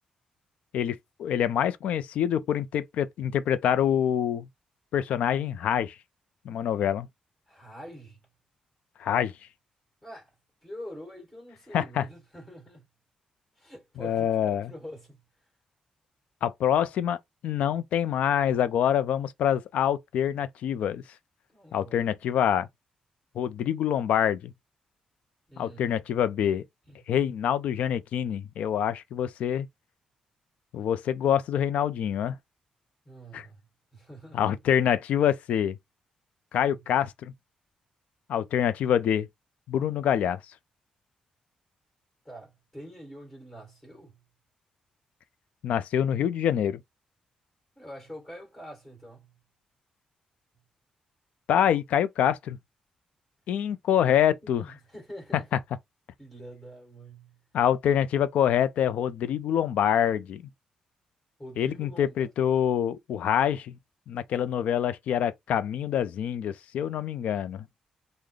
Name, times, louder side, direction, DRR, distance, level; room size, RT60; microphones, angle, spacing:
voice 1, 0.7-4.5 4.9-6.0 6.4-7.1 9.0-9.3 11.7-12.0 14.0-14.7 16.4-17.2 17.4-21.0 21.7-22.7 23.4-24.5 25.6-26.6 27.1-29.7 30.7-32.4 33.3-33.5 34.3-35.8 36.5-37.3 38.3-39.3 39.7-40.4 45.6-46.8 51.5-52.6 53.5-54.6 57.5-60.4 61.6-63.7 64.1-67.7, left 9 dB, 80° left, 0.4 m, -26 dB
voice 2, 7.5-8.2 10.0-10.3 10.6-12.9 13.6-15.2 21.5-22.1 25.5-26.0 26.9-27.0 33.0-33.6 33.9-34.6 36.6-36.9 42.2-44.2 47.8-49.4 54.4-55.6 56.2-57.4 61.4-62.3, equal, 10° left, 1.9 m, -45 dB
3.8 x 2.1 x 3.2 m
wide cardioid pair, 180°, 2 cm